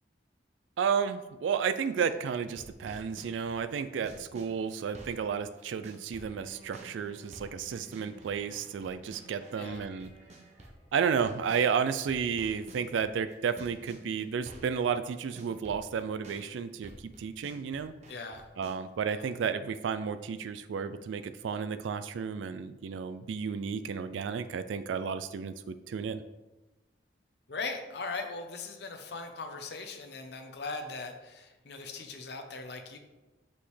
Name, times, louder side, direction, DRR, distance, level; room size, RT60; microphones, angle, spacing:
voice 1, 0.8-10.1 10.9-17.9 18.6-26.2, right 6 dB, 90° right, 11 dB, 0.3 m, -32 dB
sound 1, 1.9-2.2 2.6-11.7 12.1-14.8 15.1-18.8, right 1 dB, 40° right, 0.9 m, -50 dB
Bowed string instrument, 6.2-11.0, equal, 35° left, 1.2 m, -56 dB
voice 2, 18.1-18.4 19.1-19.3 27.5-33.0, left 3 dB, 60° left, 5 dB, 0.8 m, -39 dB
6.2 x 5.7 x 3.3 m, 1.1 s
head